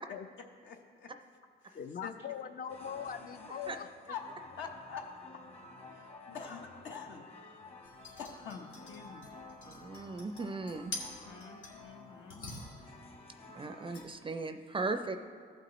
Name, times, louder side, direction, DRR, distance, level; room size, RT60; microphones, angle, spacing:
voice 1, 0.6-1.1 1.6-2.1 4.1-4.2 4.6-5.1 5.3-5.4 5.9-7.6 8.2-9.3 11.2-12.4 13.8-13.9, left 6 dB, 70° left, 2 dB, 1.0 m, -46 dB
voice 2, 1.7-4.1 6.3-6.4, left 7 dB, 45° left, 10 dB, 0.5 m, -42 dB
sound 1, 2.7-14.1, left 2 dB, 30° left, 1.2 m, -52 dB
sound 2, 7.8-11.9 12.3-13.0 13.9-14.1, left 2 dB, 90° left, 1.7 m, -47 dB
voice 3, 9.7-10.9 13.5-15.2, right 3 dB, 25° right, 8 dB, 0.4 m, -37 dB
15.0 x 6.0 x 3.0 m, 2.1 s
cardioid pair, 90°, 20 cm